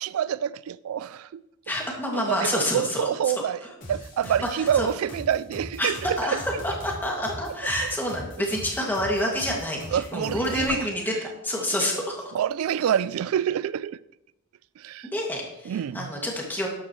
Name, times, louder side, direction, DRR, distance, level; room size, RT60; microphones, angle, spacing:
voice 1, 0.0-1.4 2.1-3.6 3.9-6.4 9.9-10.9 12.3-14.0 14.8-15.1 15.7-16.1, right 9 dB, 80° right, 0.3 m, -27 dB
voice 2, 1.7-3.1 3.6-3.7 4.6-4.9 5.8-5.9 6.2-12.3 15.1-16.7, left 1 dB, 10° left, 2.2 m, -28 dB
sound 1, 3.8-10.7, equal, 40° left, 4.0 m, -39 dB
12.5 x 10.5 x 3.1 m
head